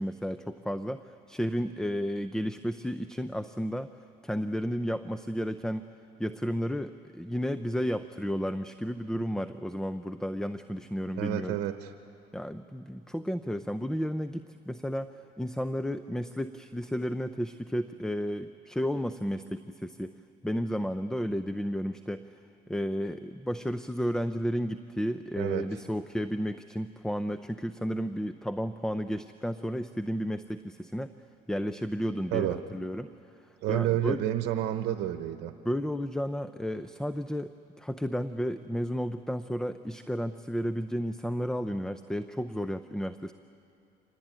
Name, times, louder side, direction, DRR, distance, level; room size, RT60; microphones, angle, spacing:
voice 1, 0.0-3.9 4.2-5.9 6.2-11.6 12.3-20.1 20.4-22.3 22.7-31.1 31.5-33.1 33.7-34.2 35.6-43.3, equal, 5° left, 11 dB, 0.5 m, -32 dB
voice 2, 11.2-11.9 25.4-25.6 32.3-32.6 33.6-35.5, right 13 dB, 80° right, 8 dB, 1.0 m, -29 dB
25.5 x 19.5 x 9.1 m, 2.6 s
cardioid pair, 110°, 17 cm